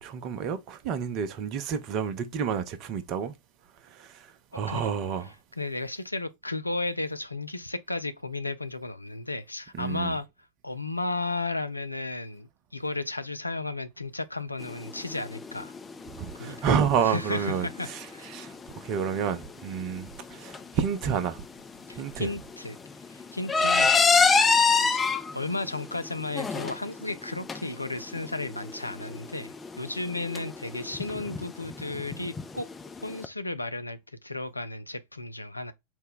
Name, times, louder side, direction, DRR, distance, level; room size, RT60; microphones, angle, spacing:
voice 1, 0.0-3.3 3.8-5.3 9.7-10.2 16.2-21.4 22.0-22.3, right 7 dB, 40° right, 0.6 m, -30 dB
voice 2, 4.5-4.9 5.6-10.3 10.6-15.7 16.4-16.7 17.0-18.3 21.9-22.8 23.1-24.0 25.3-32.7 33.0-35.7, left 2 dB, 85° left, 0.4 m, -34 dB
sound 1, 14.6-33.2, left 4 dB, 15° left, 0.4 m, -28 dB
4.4 x 2.1 x 3.7 m
figure-of-eight pair, 90°, 0 cm